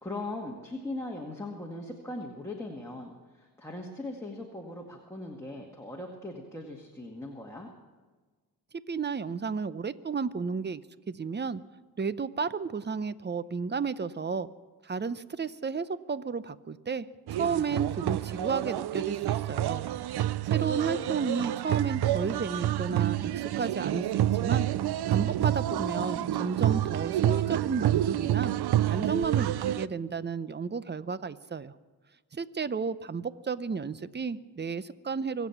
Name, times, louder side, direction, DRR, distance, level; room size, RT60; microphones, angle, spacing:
voice 1, 0.0-7.7 20.5-21.2, left 2 dB, 5° left, -1 dB, 2.0 m, -40 dB
voice 2, 8.9-10.8 11.1-11.6 12.0-14.5 14.8-19.8 20.5-24.7 25.1-28.5 28.9-31.7 32.3-35.5, right 5 dB, 25° right, 15 dB, 0.7 m, -32 dB
sound 1, 17.3-29.9, right 12 dB, 70° right, 0.5 m, -28 dB
24.5 x 8.3 x 5.9 m, 1.4 s
cardioid pair, 65°, 40 cm